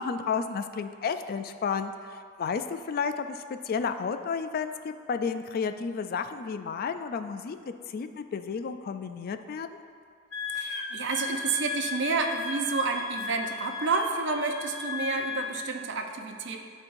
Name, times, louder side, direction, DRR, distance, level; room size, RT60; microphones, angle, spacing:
voice 1, 0.0-9.8, left 5 dB, 50° left, 9 dB, 0.3 m, -32 dB
Wind instrument woodwind instrument, 10.3-15.6, left 5 dB, 90° left, 0.7 m, -36 dB
voice 2, 10.5-16.6, right 4 dB, 60° right, 4 dB, 0.6 m, -30 dB
13.5 x 4.5 x 2.6 m, 2.2 s
head